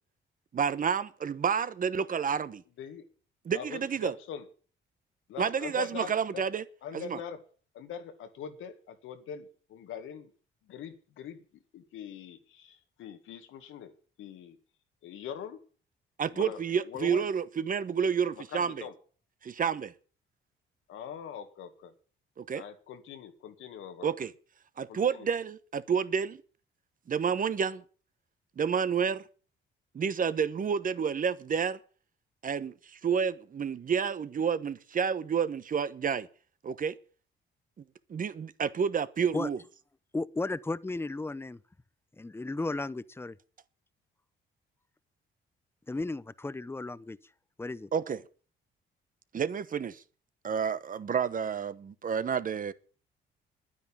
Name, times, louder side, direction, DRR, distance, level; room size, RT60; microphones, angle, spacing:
voice 1, 0.5-2.6 3.4-4.1 5.4-6.6 6.9-7.2 16.2-18.9 19.4-19.9 22.4-22.6 24.0-24.3 24.8-26.4 27.1-27.8 28.6-29.2 29.9-31.8 32.4-36.3 36.6-36.9 38.1-39.6 47.9-48.2 49.3-50.0 50.4-52.7, right 7 dB, 45° right, 1.1 m, -30 dB
voice 2, 3.5-4.5 5.3-6.4 6.8-7.4 7.7-10.3 10.6-13.9 14.2-14.6 15.0-15.6 16.3-17.3 18.4-18.9 20.9-21.9 22.5-24.1 24.9-25.3, left 8 dB, 85° left, 2.1 m, -42 dB
voice 3, 40.1-41.6 42.2-43.4 45.9-47.2 47.6-47.9, left 2 dB, 10° left, 0.7 m, -34 dB
10.5 x 9.6 x 8.9 m
cardioid pair, 90°, 20 cm